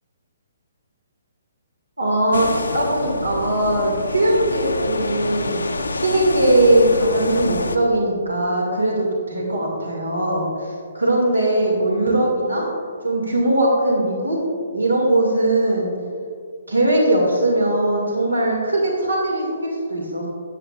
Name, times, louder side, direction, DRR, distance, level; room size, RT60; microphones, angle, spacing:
voice 1, 2.0-5.6 5.9-12.7 13.0-14.4 14.7-15.9 16.7-20.3, right 1 dB, 90° right, -1 dB, 2.0 m, -20 dB
sound 1, 2.3-7.8, left 2 dB, 85° left, 0.6 m, -27 dB
13.0 x 9.1 x 2.4 m, 2.2 s
figure-of-eight pair, 135°, 0 cm